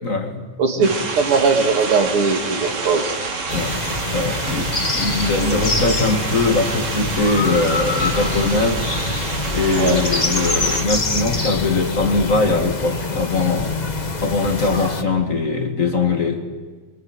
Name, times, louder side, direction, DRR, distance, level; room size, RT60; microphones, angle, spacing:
voice 1, 0.0-0.5 0.8-0.9 3.5-3.8 4.1-8.9 9.5-13.8 14.2-16.5, left 3 dB, 30° left, 4 dB, 2.0 m, -21 dB
voice 2, 0.6-3.1 9.8-10.0, right 4 dB, 50° right, 5 dB, 3.2 m, -19 dB
sound 1, 0.8-10.9, right 4 dB, 65° right, 4.0 m, -28 dB
sound 2, 3.5-15.0, left 3 dB, 55° left, 0.4 m, -25 dB
26.0 x 23.0 x 8.0 m, 1.4 s
omnidirectional pair, 3.4 m